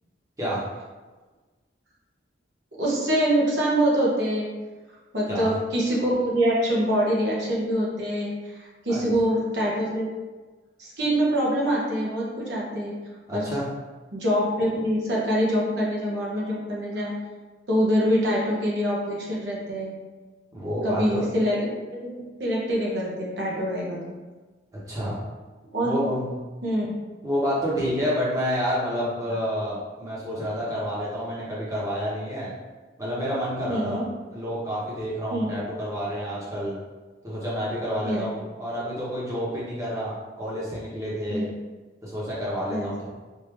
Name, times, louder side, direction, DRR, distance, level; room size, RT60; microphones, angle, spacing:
voice 1, 2.8-4.5 5.1-10.1 10.8-12.9 13.3-13.5 14.1-17.1 17.7-19.9 20.8-22.1 22.4-24.1 25.7-26.1 26.6-27.0 29.3-29.4 33.7-34.0 35.3-35.5 38.0-38.3 41.3-41.5 42.7-42.9, equal, 65° right, -4 dB, 0.9 m, -25 dB
voice 2, 13.3-13.7 20.5-21.2 24.9-25.2 25.8-26.3 27.2-32.5 33.0-34.0 34.3-36.8 37.2-41.4 42.0-43.1, equal, 15° right, -8 dB, 1.1 m, -29 dB
3.5 x 2.7 x 3.3 m, 1.3 s
head